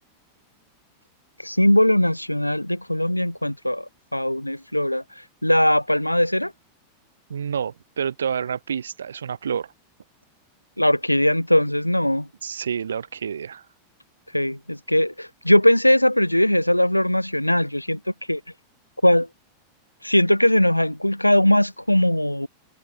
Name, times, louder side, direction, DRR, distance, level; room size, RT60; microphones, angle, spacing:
voice 1, 1.4-6.5 10.8-12.3 14.3-18.0 18.3-18.4 19.0-19.3 20.0-22.5, left 1 dB, 90° left, 0.9 m, -20 dB
voice 2, 7.3-9.7 12.4-13.6, right 7 dB, 70° right, 5.1 m, -28 dB
figure-of-eight pair, 90°, 0 cm